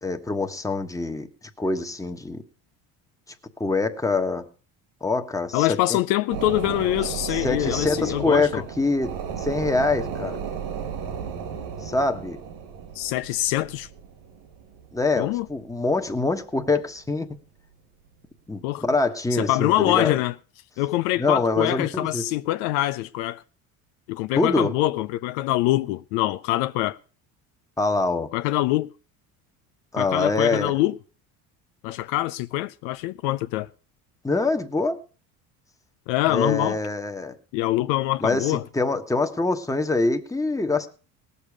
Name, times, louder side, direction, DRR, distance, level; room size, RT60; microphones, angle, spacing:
voice 1, 0.0-1.3 1.6-2.4 3.6-4.4 5.0-6.0 7.3-10.4 11.8-12.4 14.9-17.3 18.5-20.1 21.2-22.2 24.3-24.7 27.8-28.3 29.9-30.7 34.2-35.0 36.3-37.3 38.2-40.9, left 3 dB, 5° left, 1.3 m, -24 dB
voice 2, 5.5-8.6 13.0-13.9 15.2-15.5 18.6-18.8 19.3-20.3 20.8-23.4 24.1-27.0 28.3-28.9 30.0-31.0 31.8-33.7 36.1-36.8 37.5-38.6, left 16 dB, 70° left, 0.6 m, -24 dB
sound 1, 6.3-16.3 16.7-16.8, right 7 dB, 65° right, 2.2 m, -34 dB
18.5 x 7.0 x 4.8 m
hypercardioid pair, 75°, 44 cm